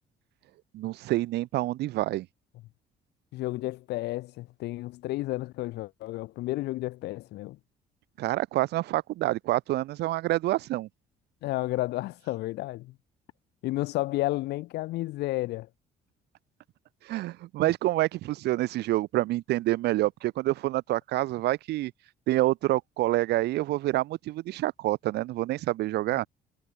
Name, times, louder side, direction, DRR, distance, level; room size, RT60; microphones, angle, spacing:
voice 1, 0.7-2.3 8.2-10.9 17.0-21.9 22.3-26.3, right 16 dB, 80° right, 2.6 m, -27 dB
voice 2, 3.3-7.6 11.4-12.9 13.6-15.7, left 18 dB, 80° left, 1.3 m, -31 dB
cardioid pair, 110°, 17 cm